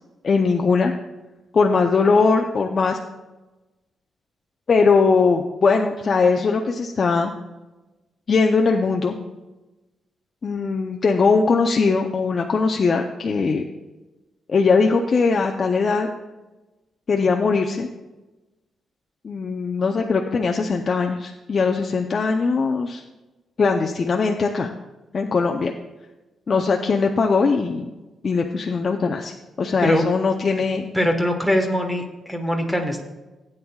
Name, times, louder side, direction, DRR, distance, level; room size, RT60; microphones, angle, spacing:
voice 1, 0.2-0.9 1.5-3.0 4.7-7.3 8.3-9.2 10.4-13.6 14.5-16.1 17.1-17.9 19.2-23.0 23.6-24.7 25.1-25.7 26.5-27.9 28.2-29.3 29.6-30.8, left 4 dB, 40° left, 2 dB, 0.6 m, -20 dB
voice 2, 30.9-32.0 32.3-33.0, equal, ahead, 3 dB, 1.3 m, -21 dB
16.5 x 8.8 x 2.3 m, 1.1 s
cardioid pair, 140°, 0 cm